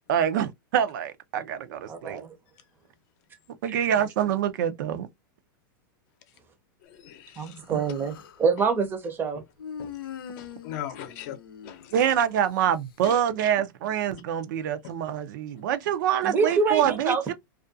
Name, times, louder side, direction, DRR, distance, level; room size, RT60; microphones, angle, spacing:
voice 1, 0.1-2.2 3.6-5.1 7.7-7.8 11.9-17.3, right 9 dB, 60° right, 0.5 m, -26 dB
voice 2, 1.9-2.3 3.7-3.8 7.4-9.4 16.2-17.3, right 5 dB, 20° right, 0.6 m, -26 dB
voice 3, 6.9-7.6 9.8-9.9 10.4-11.3 11.6-11.9 13.0-13.2, left 11 dB, 50° left, 0.7 m, -39 dB
Human voice, 7.5-8.4 9.6-12.3, left 8 dB, 85° left, 0.6 m, -42 dB
2.4 x 2.3 x 2.5 m
supercardioid pair, 140°, 11 cm